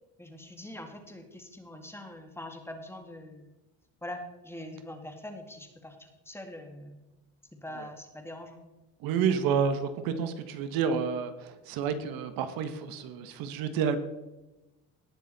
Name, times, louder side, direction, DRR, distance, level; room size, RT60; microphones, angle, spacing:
voice 1, 0.2-3.5 4.0-7.0 7.6-8.6, left 1 dB, 5° left, 4 dB, 2.1 m, -43 dB
voice 2, 9.0-14.0, right 6 dB, 75° right, 9 dB, 1.4 m, -29 dB
18.5 x 6.6 x 4.2 m, 1.0 s
cardioid pair, 105°, 35 cm